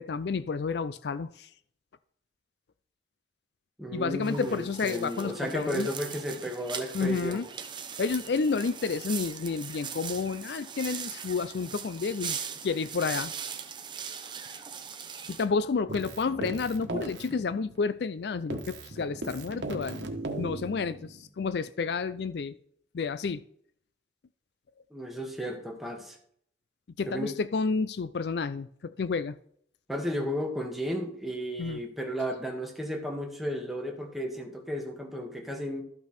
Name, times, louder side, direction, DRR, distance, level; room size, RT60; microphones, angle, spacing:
voice 1, 0.0-1.5 3.9-5.9 6.9-7.5 8.0-12.4 12.6-13.3 15.3-20.1 20.4-22.6 22.9-23.4 27.0-29.3 31.6-31.8, left 4 dB, 65° left, 14 dB, 0.4 m, -30 dB
voice 2, 3.8-7.5 24.9-26.2 27.1-27.3 29.9-35.8, equal, ahead, 0 dB, 1.7 m, -33 dB
sound 1, 4.2-15.4, right 7 dB, 25° right, 0.8 m, -40 dB
Keyboard (musical), 15.9-18.2 18.5-21.3, right 2 dB, 85° right, 1.4 m, -38 dB
13.0 x 5.8 x 4.3 m, 0.63 s
head